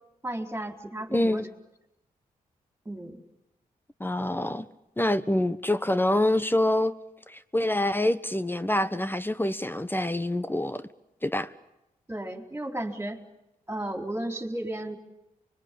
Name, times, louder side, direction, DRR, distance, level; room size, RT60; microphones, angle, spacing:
voice 1, 0.2-1.5 2.9-3.2 12.1-13.2 13.7-15.0, right 1 dB, 15° right, 4.2 m, -34 dB
voice 2, 1.1-1.4 4.0-4.7 5.0-7.0 7.3-10.8 11.2-11.5, left 1 dB, 15° left, 1.2 m, -26 dB
25.5 x 22.0 x 8.6 m
supercardioid pair, 45°, 16 cm